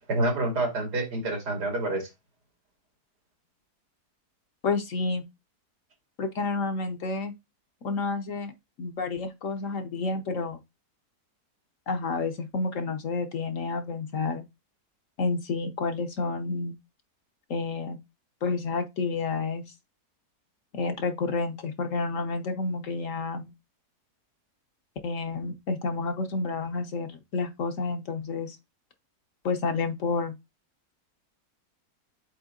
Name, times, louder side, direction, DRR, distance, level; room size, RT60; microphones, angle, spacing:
voice 1, 0.1-2.1, right 2 dB, 90° right, 3.0 m, -27 dB
voice 2, 4.6-5.2 6.2-7.3 7.8-8.5 8.8-10.6 11.9-14.4 15.2-16.7 17.5-18.0 18.4-19.6 20.7-23.5 25.0-28.6 29.4-30.4, left 4 dB, 55° left, 1.3 m, -30 dB
8.1 x 3.3 x 3.8 m
omnidirectional pair, 1.7 m